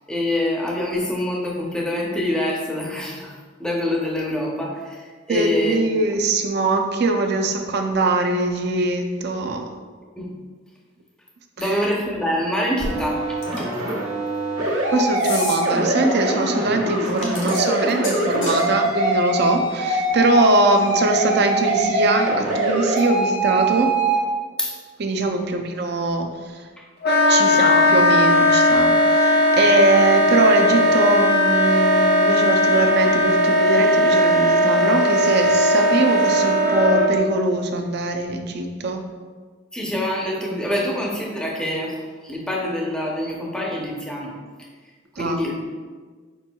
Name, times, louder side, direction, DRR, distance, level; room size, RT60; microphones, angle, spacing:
voice 1, 0.1-5.0 5.3-5.8 10.2-10.3 11.6-13.7 24.6-24.8 25.4-25.5 26.8-26.9 39.7-44.3 45.1-45.5, left 1 dB, 5° left, -2 dB, 0.6 m, -25 dB
voice 2, 5.3-9.7 11.6-11.8 14.9-23.9 25.0-26.6 27.3-39.0 45.2-45.4, right 2 dB, 55° right, 5 dB, 0.5 m, -22 dB
sound 1, 12.8-24.2, right 1 dB, 85° right, 1.2 m, -23 dB
sound 2, 13.4-13.8 15.2-15.6 17.0-18.7, left 3 dB, 75° left, 1.1 m, -32 dB
Wind instrument woodwind instrument, 27.0-37.1, left 1 dB, 55° left, 0.7 m, -17 dB
5.2 x 4.3 x 2.2 m, 1.5 s
head